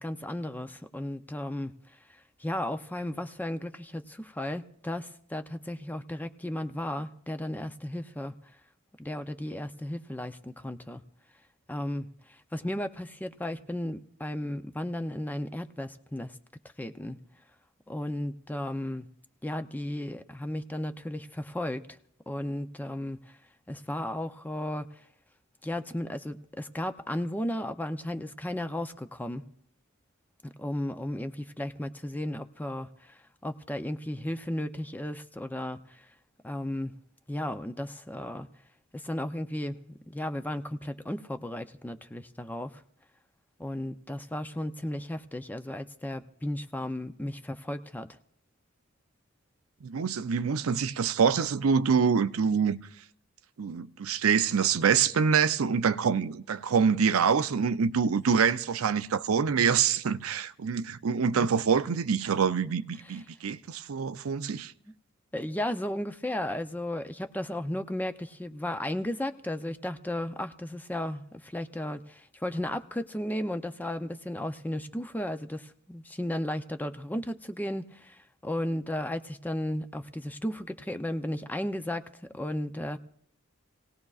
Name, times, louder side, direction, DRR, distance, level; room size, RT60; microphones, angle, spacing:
voice 1, 0.0-1.7 2.1-8.3 9.0-11.0 11.7-16.4 16.8-17.2 17.9-19.1 19.4-21.9 22.3-23.4 23.7-25.0 25.6-29.4 30.4-36.1 36.4-37.0 37.3-38.5 38.9-42.8 43.6-48.2 61.4-61.5 63.0-63.2 65.3-83.0, left 1 dB, 10° left, 0.5 m, -34 dB
voice 2, 49.8-52.8 53.6-64.7, right 6 dB, 90° right, 0.5 m, -25 dB
28.0 x 18.0 x 2.4 m
head